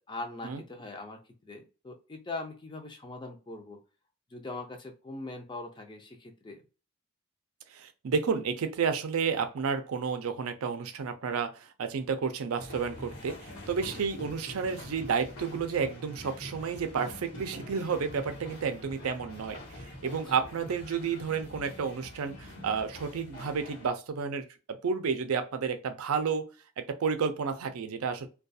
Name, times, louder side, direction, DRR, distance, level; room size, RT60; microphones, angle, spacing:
voice 1, 0.0-3.8 4.3-6.6, left 2 dB, 20° left, 4 dB, 0.4 m, -41 dB
voice 2, 7.7-26.5 26.8-28.3, right 6 dB, 80° right, 8 dB, 0.4 m, -31 dB
sound 1, 12.6-23.9, left 1 dB, 85° left, 1.1 m, -45 dB
2.3 x 2.3 x 2.6 m, 0.33 s
head